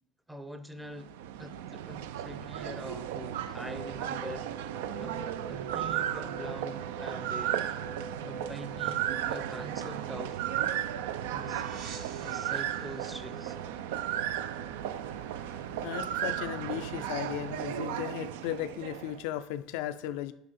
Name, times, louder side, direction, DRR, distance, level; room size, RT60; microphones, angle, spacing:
voice 1, 0.3-4.5 5.0-7.6 8.0-10.4 11.3-11.7 12.2-13.6, equal, 5° right, 0.5 m, -44 dB
sound 1, 0.9-19.3, right 11 dB, 90° right, 0.3 m, -35 dB
sound 2, 3.6-17.5, right 2 dB, 45° right, 1.5 m, -46 dB
sound 3, 10.3-15.2, right 5 dB, 65° right, 1.0 m, -52 dB
voice 2, 15.5-20.3, left 12 dB, 75° left, 0.4 m, -36 dB
6.4 x 4.6 x 4.1 m
supercardioid pair, 110°, 0 cm